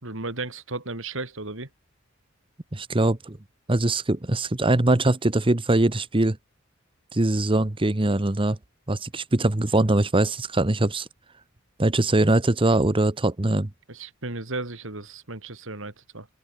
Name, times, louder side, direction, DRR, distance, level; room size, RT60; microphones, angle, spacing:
voice 1, 0.0-1.7 13.9-16.3, right 2 dB, 70° right, 3.6 m, -34 dB
voice 2, 2.7-3.4 3.7-6.4 7.1-8.6 8.9-11.1 11.8-13.7, right 2 dB, 25° right, 1.0 m, -22 dB
open air
head